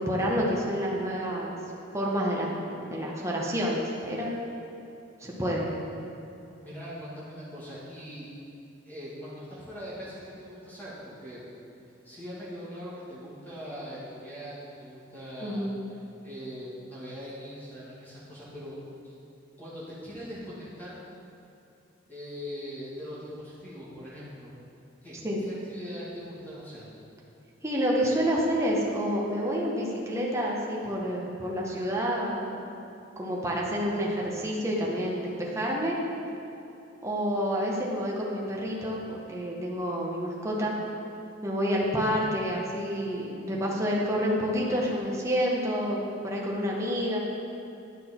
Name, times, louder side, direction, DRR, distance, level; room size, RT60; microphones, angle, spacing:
voice 1, 0.0-1.6 1.9-4.3 5.2-5.7 15.4-15.8 25.2-25.4 27.6-32.6 33.2-36.0 37.0-40.7 41.4-47.2, equal, 15° right, -4 dB, 1.0 m, -28 dB
voice 2, 6.6-8.3 8.9-11.4 12.0-15.7 16.2-18.8 19.0-19.1 19.6-21.1 22.1-24.6 25.0-25.2 25.4-26.9, equal, 10° left, -9 dB, 2.1 m, -41 dB
10.0 x 6.2 x 4.3 m, 2.8 s
head